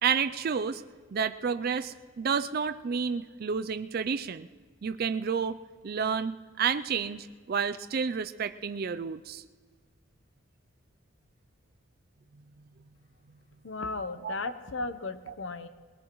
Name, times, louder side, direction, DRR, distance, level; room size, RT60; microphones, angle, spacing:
voice 1, 0.0-0.8 1.1-4.5 4.8-5.6 5.8-9.4 14.2-14.4, right 6 dB, 45° right, 11 dB, 0.4 m, -30 dB
voice 2, 13.6-15.7, left 3 dB, 60° left, 10 dB, 0.8 m, -35 dB
22.5 x 18.5 x 3.1 m, 1.5 s
head